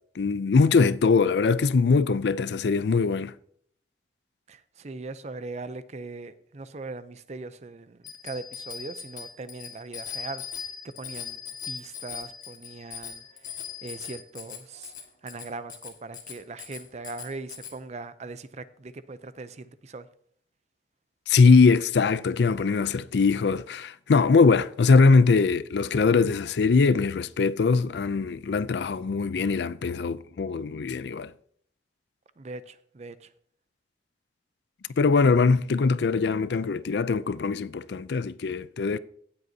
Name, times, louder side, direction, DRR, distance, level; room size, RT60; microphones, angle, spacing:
voice 1, 0.2-3.3 21.3-31.3 35.0-39.0, left 4 dB, 75° left, 0.4 m, -22 dB
voice 2, 4.5-11.4 11.7-13.5 13.8-14.9 15.2-20.1 32.4-33.3, right 3 dB, 40° right, 0.5 m, -40 dB
Bicycle bell, 8.0-17.7, left 8 dB, 50° left, 1.7 m, -40 dB
17.0 x 7.8 x 2.8 m
head